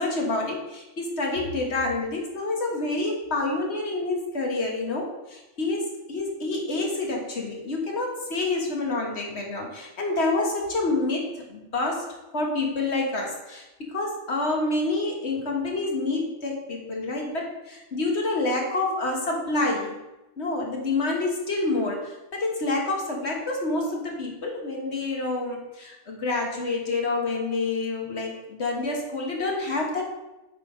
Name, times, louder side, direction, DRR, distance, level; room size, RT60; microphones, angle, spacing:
voice 1, 0.0-12.1 12.3-20.0 20.4-30.1, left 2 dB, 55° left, 0 dB, 1.6 m, -28 dB
8.8 x 4.0 x 5.0 m, 0.98 s
omnidirectional pair, 1.4 m